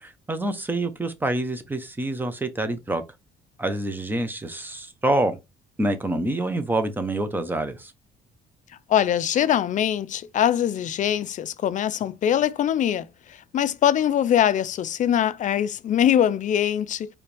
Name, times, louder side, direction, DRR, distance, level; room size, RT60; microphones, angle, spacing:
voice 1, 0.0-3.0 3.6-5.4 5.8-7.9, right 1 dB, 10° right, 0.9 m, -26 dB
voice 2, 8.9-17.1, left 10 dB, 50° left, 0.5 m, -22 dB
4.6 x 3.4 x 3.4 m
cardioid pair, 110°, 17 cm